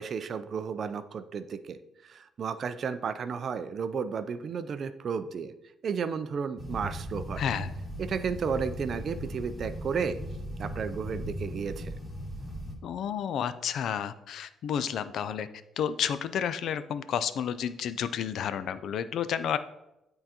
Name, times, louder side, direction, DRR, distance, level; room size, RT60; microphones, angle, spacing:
voice 1, 0.0-5.5 5.8-7.4 8.0-10.2 10.6-11.9, right 6 dB, 55° right, 11 dB, 0.4 m, -33 dB
sound 1, 6.6-12.7, equal, 25° left, 1.4 m, -38 dB
voice 2, 7.4-7.7 12.8-15.5 15.8-19.6, left 8 dB, 70° left, 13 dB, 0.3 m, -31 dB
9.0 x 3.8 x 2.8 m, 0.92 s
cardioid pair, 90°, 0 cm